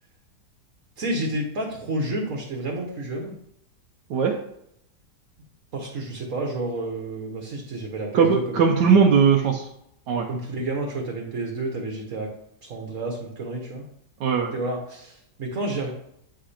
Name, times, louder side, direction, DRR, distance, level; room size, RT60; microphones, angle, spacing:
voice 1, 1.0-3.3 5.7-8.9 10.3-12.3 12.6-13.8 14.5-15.9, right 2 dB, 55° right, 0 dB, 1.7 m, -30 dB
voice 2, 8.1-9.7 10.1-10.3 14.2-14.5, right 6 dB, 85° right, 0 dB, 1.5 m, -19 dB
9.1 x 5.1 x 4.3 m, 0.75 s
omnidirectional pair, 1.8 m